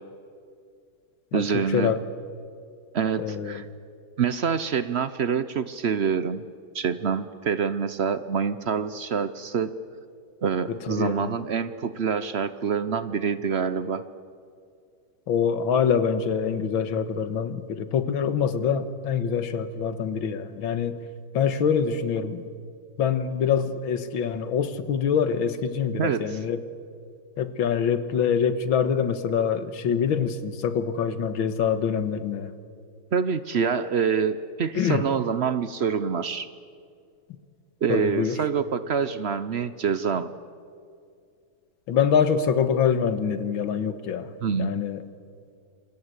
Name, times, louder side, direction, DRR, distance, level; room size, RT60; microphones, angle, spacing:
voice 1, 1.3-1.9 2.9-3.6 4.2-6.4 6.7-9.7 10.4-14.0 26.0-26.4 33.1-36.5 37.8-40.3 44.4-44.7, right 6 dB, 65° right, 13 dB, 0.6 m, -26 dB
voice 2, 3.2-3.6 10.7-11.4 15.3-21.0 21.3-22.4 23.0-26.6 27.4-32.5 34.8-35.1 37.9-38.4 41.9-44.3 44.6-45.0, left 7 dB, 80° left, 12 dB, 2.1 m, -25 dB
27.0 x 22.0 x 8.2 m, 2.3 s
omnidirectional pair, 2.2 m